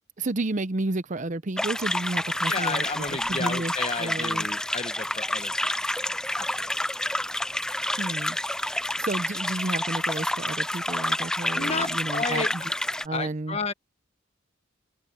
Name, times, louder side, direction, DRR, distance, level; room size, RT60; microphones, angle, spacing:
voice 1, 0.2-3.7 4.0-4.4 8.0-8.4 9.0-12.7 13.0-13.6, right 2 dB, 40° right, 0.7 m, -31 dB
sound 1, 1.6-13.1, left 1 dB, 5° left, 0.3 m, -29 dB
voice 2, 2.5-5.7 6.1-6.9 11.5-12.5 13.1-13.7, left 4 dB, 35° left, 1.5 m, -32 dB
head